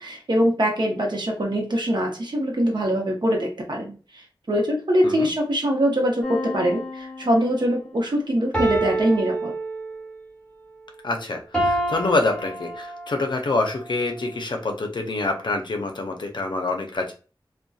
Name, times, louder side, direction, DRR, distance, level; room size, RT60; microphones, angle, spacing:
voice 1, 0.0-3.9 4.5-9.5, equal, 60° right, 1 dB, 0.7 m, -23 dB
sound 1, 6.2-7.5 8.5-10.2 11.5-13.3 13.9-14.0, right 1 dB, 15° left, 1.1 m, -28 dB
voice 2, 11.0-17.1, left 2 dB, 65° left, 4 dB, 0.5 m, -26 dB
2.5 x 2.2 x 2.2 m, 0.35 s
wide cardioid pair, 50°, 8 cm